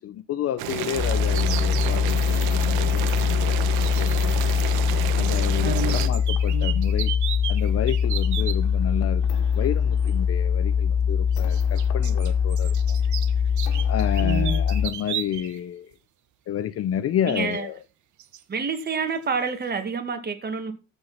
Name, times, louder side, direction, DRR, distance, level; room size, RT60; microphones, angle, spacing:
voice 1, 0.0-3.7 4.0-4.4 5.1-7.1 7.5-13.0 13.9-15.9 16.5-17.8, left 10 dB, 40° left, 0.7 m, -30 dB
Boiling, 0.6-6.1, right 13 dB, 75° right, 1.3 m, -30 dB
sound 1, 0.9-14.9, left 7 dB, 75° left, 2.2 m, -23 dB
sound 2, 1.3-1.9 3.8-4.9 5.2-8.6 10.0-10.1 11.3-15.6 15.9-16.0 17.5-17.6 18.2-18.4 18.7-19.0, right 12 dB, 50° right, 1.4 m, -35 dB
voice 2, 5.6-6.1 6.5-6.8 14.2-14.6 17.3-17.7 18.5-20.7, right 5 dB, 25° right, 2.4 m, -28 dB
14.5 x 5.4 x 5.7 m
cardioid pair, 130°, 37 cm